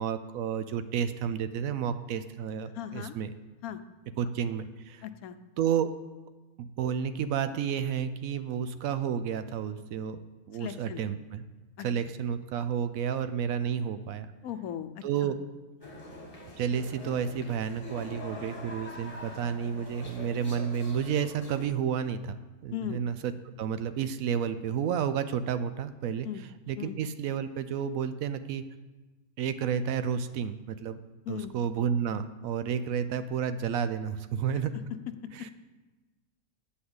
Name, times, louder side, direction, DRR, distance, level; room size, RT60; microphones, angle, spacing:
voice 1, 0.0-3.3 4.2-5.0 5.6-5.9 6.6-10.2 10.5-11.4 11.8-14.3 15.0-15.4 16.6-23.3 23.6-28.6 29.4-31.0 31.3-34.7 35.3-35.5, right 8 dB, 70° right, 11 dB, 0.9 m, -31 dB
voice 2, 2.7-3.1 3.6-3.8 5.0-5.4 10.6-11.0 11.8-11.9 14.4-15.3 22.7-23.0 26.2-26.4 26.8-27.0 31.3-31.5 34.7-34.8 35.4-35.5, left 11 dB, 75° left, 10 dB, 1.1 m, -37 dB
sound 1, 15.8-21.7, left 1 dB, 25° left, 1.6 m, -44 dB
8.6 x 5.6 x 7.9 m, 1.2 s
omnidirectional pair, 1.6 m